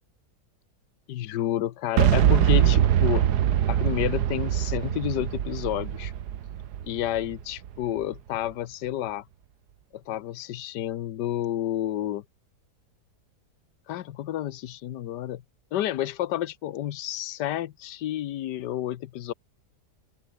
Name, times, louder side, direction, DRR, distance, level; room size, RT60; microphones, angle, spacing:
voice 1, 1.1-3.2 3.7-6.1 6.8-9.2 9.9-12.2 13.9-15.4 15.7-19.3, left 12 dB, 85° left, 1.4 m, -30 dB
Boom, 2.0-7.8, right 10 dB, 75° right, 1.6 m, -23 dB
open air
omnidirectional pair, 1.8 m